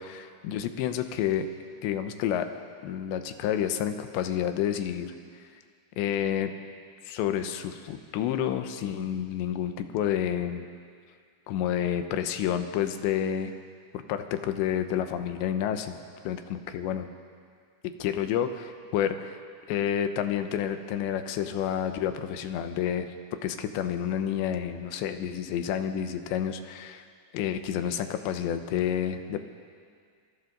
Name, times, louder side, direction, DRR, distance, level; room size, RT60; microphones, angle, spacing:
voice 1, 0.0-1.5 1.8-2.5 2.8-5.1 6.0-6.5 7.0-10.6 11.5-13.5 13.9-17.1 18.0-19.4 19.7-23.1 23.4-27.0 27.3-29.4, left 9 dB, 90° left, 8 dB, 3.3 m, -29 dB
28.5 x 24.5 x 3.9 m, 2.1 s
omnidirectional pair, 4.9 m